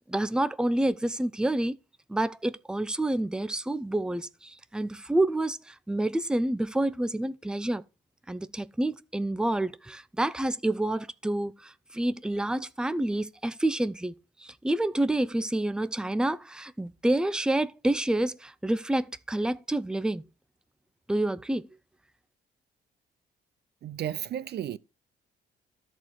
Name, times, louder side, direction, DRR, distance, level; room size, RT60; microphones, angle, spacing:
voice 1, 0.1-1.8 2.1-7.8 8.3-14.1 14.4-20.2 21.1-21.7, right 1 dB, 5° right, 0.6 m, -28 dB
voice 2, 23.8-24.8, right 10 dB, 55° right, 0.5 m, -33 dB
13.0 x 4.4 x 4.6 m
cardioid pair, 90°, 20 cm